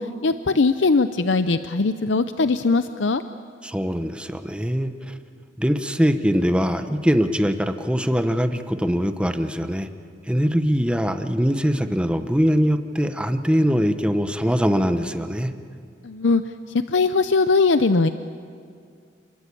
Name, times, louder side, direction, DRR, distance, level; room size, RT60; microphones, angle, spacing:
voice 1, 0.0-3.2 16.0-16.4 16.9-18.1, left 3 dB, 85° left, 11 dB, 0.7 m, -20 dB
voice 2, 3.6-5.1 5.6-9.9 10.3-15.5, equal, 5° right, 8 dB, 1.1 m, -22 dB
29.0 x 22.0 x 8.6 m, 2.3 s
head